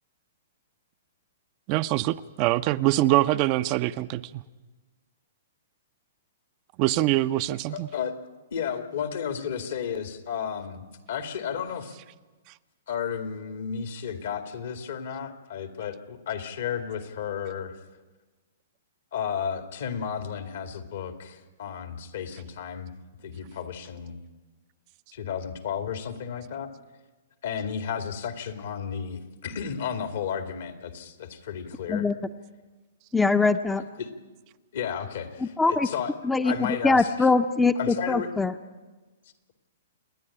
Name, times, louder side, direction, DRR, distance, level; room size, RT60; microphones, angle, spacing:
voice 1, 1.7-4.4 6.8-7.9, right 16 dB, 40° right, 12 dB, 0.6 m, -24 dB
voice 2, 7.7-8.2 8.5-12.0 12.9-17.7 19.1-22.9 23.2-24.2 25.1-26.7 27.4-32.1 34.0-34.1 34.7-36.1 36.4-37.1 37.8-38.3, left 7 dB, 65° left, 7 dB, 2.2 m, -33 dB
voice 3, 33.1-33.8 35.4-35.9 36.2-38.5, left 3 dB, 10° left, 9 dB, 0.7 m, -23 dB
28.0 x 10.0 x 9.9 m, 1.3 s
hypercardioid pair, 120°, 0 cm